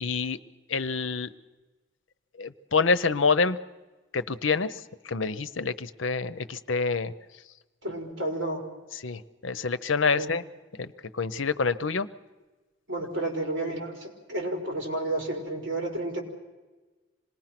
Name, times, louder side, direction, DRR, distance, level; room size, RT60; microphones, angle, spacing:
voice 1, 0.0-0.4 0.7-1.3 2.4-3.6 4.1-7.1 9.0-10.4 10.8-12.1, left 4 dB, 80° left, 13 dB, 0.8 m, -27 dB
voice 2, 7.8-8.6 10.1-10.3 12.9-16.2, right 1 dB, 65° right, 2 dB, 5.0 m, -31 dB
26.5 x 19.5 x 6.0 m, 1.2 s
head